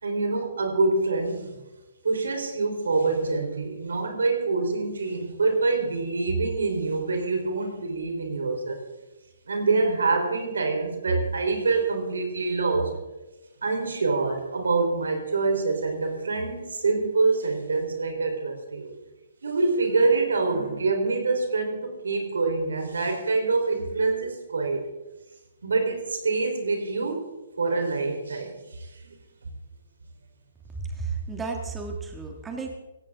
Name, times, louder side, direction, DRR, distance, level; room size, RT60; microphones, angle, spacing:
voice 1, 0.0-1.6 2.0-8.8 9.5-13.0 13.6-18.9 19.4-24.8 25.6-27.2 27.6-29.2, right 3 dB, 90° right, 4 dB, 3.8 m, -25 dB
voice 2, 30.8-32.8, right 4 dB, 10° right, 2 dB, 1.7 m, -33 dB
17.5 x 16.0 x 3.7 m, 1.0 s
hypercardioid pair, 150°, 0 cm